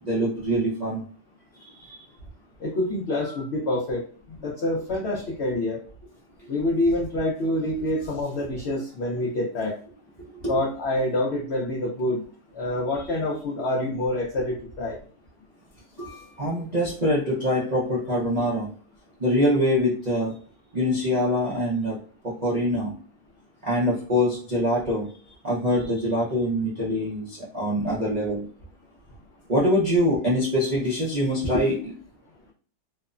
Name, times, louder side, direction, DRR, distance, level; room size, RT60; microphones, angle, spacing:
voice 1, 0.0-1.0 1.6-2.0 10.4-10.5 16.0-18.7 19.2-20.3 20.7-22.0 22.2-22.9 23.6-25.1 25.4-28.5 29.5-31.9, equal, 65° right, -7 dB, 0.4 m, -24 dB
voice 2, 2.6-4.0 4.3-5.8 6.5-9.8 10.5-12.2 12.5-15.0, left 1 dB, 75° left, -2 dB, 0.5 m, -26 dB
2.9 x 2.1 x 2.4 m, 0.43 s
omnidirectional pair, 1.8 m